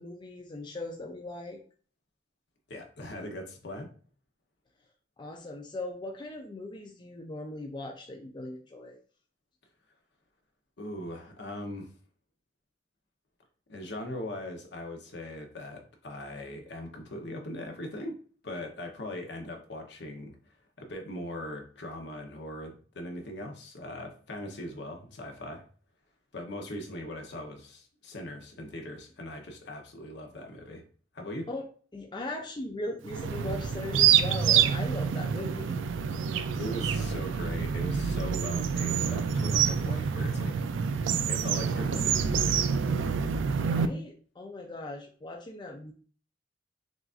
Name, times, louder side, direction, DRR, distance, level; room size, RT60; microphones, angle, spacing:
voice 1, 0.0-1.6 5.2-8.9 31.5-31.6 31.9-35.8 43.5-45.9, left 2 dB, 25° left, 0 dB, 0.4 m, -39 dB
voice 2, 2.7-3.9 10.8-11.9 13.7-18.1 18.4-20.4 20.8-25.6 26.3-30.8 31.1-31.5 36.3-40.5 41.2-42.7, left 1 dB, 65° left, 3 dB, 0.9 m, -40 dB
sound 1, 33.1-43.9, right 7 dB, 85° right, 0.4 m, -27 dB
6.0 x 2.5 x 2.4 m, 0.43 s
head